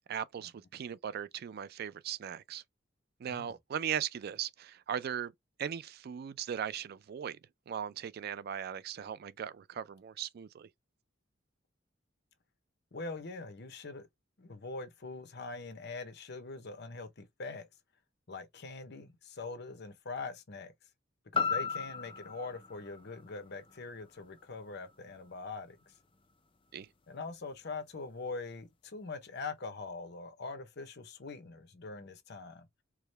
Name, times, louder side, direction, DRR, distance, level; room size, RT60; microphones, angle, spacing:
voice 1, 0.1-2.6 3.2-5.3 5.6-7.4 7.7-10.7 26.7-26.9, right 8 dB, 50° right, 0.3 m, -38 dB
voice 2, 12.9-14.1 14.4-17.7 18.3-20.7 21.3-25.9 27.1-32.7, left 3 dB, 55° left, 0.8 m, -43 dB
sound 1, 21.3-25.4 25.9-26.0, left 5 dB, 25° left, 0.5 m, -37 dB
4.7 x 2.1 x 3.2 m
head